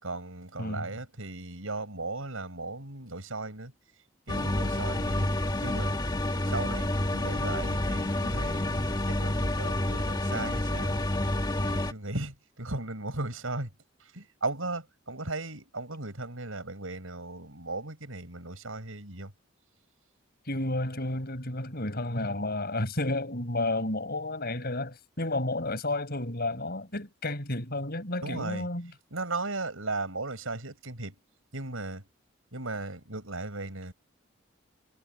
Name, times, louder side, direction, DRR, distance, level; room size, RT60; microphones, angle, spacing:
voice 1, 0.0-3.7 4.3-5.3 5.6-5.9 6.5-11.1 11.6-13.7 14.1-19.3 28.2-28.7 29.1-31.2 31.5-32.0 32.5-33.9, right 2 dB, 80° right, 5.9 m, -36 dB
voice 2, 0.6-0.9 20.5-28.9, left 2 dB, 50° left, 5.9 m, -31 dB
sound 1, 4.3-11.9, left 1 dB, 20° left, 1.5 m, -29 dB
head